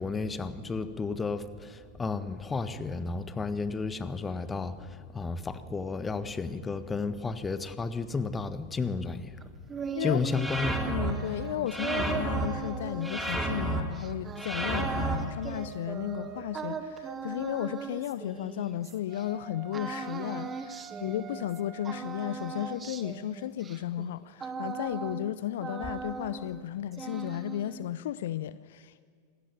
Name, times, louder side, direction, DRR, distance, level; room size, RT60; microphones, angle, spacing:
voice 1, 0.0-9.3 10.0-11.0, left 4 dB, 15° left, 1.4 m, -32 dB
sound 1, 9.4-19.3 19.7-21.6 21.8-25.3 25.6-26.6 26.9-27.9, right 5 dB, 20° right, 1.7 m, -39 dB
sound 2, 10.3-11.1 11.7-12.5 13.0-13.8 14.4-15.2, right 2 dB, 5° right, 3.6 m, -31 dB
voice 2, 10.9-29.0, left 12 dB, 55° left, 0.6 m, -34 dB
sound 3, 11.3-12.8 14.4-17.2 19.1-22.1, right 7 dB, 35° right, 2.3 m, -47 dB
27.0 x 20.0 x 9.3 m
figure-of-eight pair, 90°, 0 cm